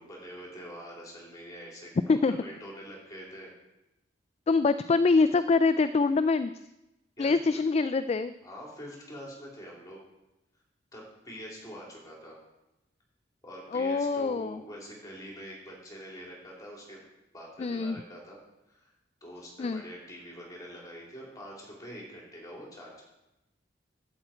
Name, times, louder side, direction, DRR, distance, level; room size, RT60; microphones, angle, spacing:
voice 1, 0.0-3.5 7.2-7.6 8.4-10.0 10.9-12.4 13.4-17.0 17.3-18.4 18.7-18.9 19.2-22.9, equal, 20° left, -3 dB, 3.6 m, -45 dB
voice 2, 4.5-6.5 7.2-8.3 13.7-14.6 17.6-18.0 19.6-19.8, left 4 dB, 35° left, 13 dB, 0.3 m, -25 dB
11.5 x 8.9 x 4.4 m, 0.93 s
head